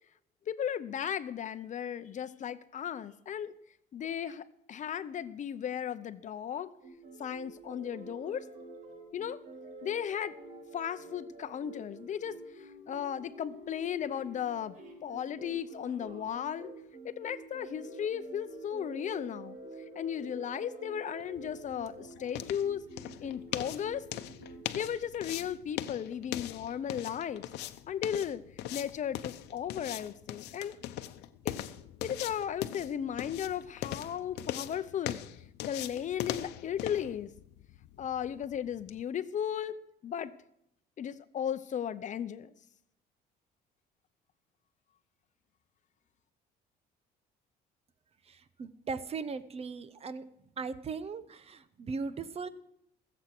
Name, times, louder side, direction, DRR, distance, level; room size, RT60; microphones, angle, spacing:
voice 1, 0.5-3.5 3.9-6.7 7.2-8.5 9.1-9.4 9.8-10.3 10.7-12.4 12.9-14.7 15.0-16.7 17.0-19.6 20.0-22.8 23.2-24.1 24.7-27.4 27.9-28.4 28.7-30.8 31.4-31.5 32.0-35.2 35.6-37.3 38.0-39.8 40.0-40.3 41.0-42.5, left 9 dB, 45° left, 13 dB, 0.7 m, -35 dB
sound 1, 6.8-24.8, right 2 dB, 50° right, 4.7 m, -48 dB
sound 2, 21.2-39.0, left 13 dB, 85° left, 0.8 m, -41 dB
voice 2, 48.2-52.5, right 5 dB, 35° right, 14 dB, 0.9 m, -39 dB
19.0 x 8.0 x 6.0 m, 0.77 s
cardioid pair, 110°, 17 cm